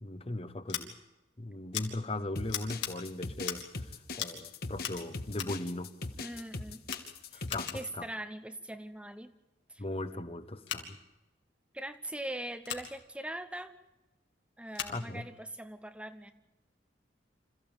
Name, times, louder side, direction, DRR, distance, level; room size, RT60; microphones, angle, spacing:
voice 1, 0.0-1.0 1.4-5.9 7.3-8.1 9.8-11.0 14.9-15.3, left 2 dB, 30° left, 11 dB, 1.2 m, -38 dB
Scissors, 0.7-0.8 1.7-1.9 2.5-2.9 3.4-3.7 4.1-4.4 4.8-5.6 6.3-6.5 6.8-7.9 10.6-10.8 12.6-12.9 14.7-15.0, left 9 dB, 80° left, 3.0 m, -39 dB
sound 1, 2.4-7.8, left 3 dB, 55° left, 1.6 m, -40 dB
voice 2, 6.2-6.8 7.3-7.4 7.7-9.3 9.7-9.8 11.7-13.7 14.6-16.3, right 1 dB, 5° right, 9 dB, 0.8 m, -41 dB
27.0 x 15.0 x 9.0 m, 1.0 s
head